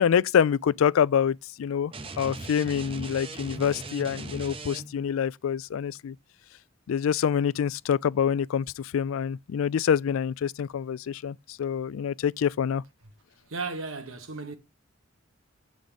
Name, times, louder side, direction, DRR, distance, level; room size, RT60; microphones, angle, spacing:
voice 1, 0.0-6.2 6.9-12.8, left 8 dB, 85° left, 0.3 m, -26 dB
sound 1, 1.9-5.1, right 3 dB, 25° right, 0.6 m, -39 dB
voice 2, 13.5-14.6, right 4 dB, 80° right, 1.3 m, -35 dB
7.2 x 3.9 x 5.1 m
head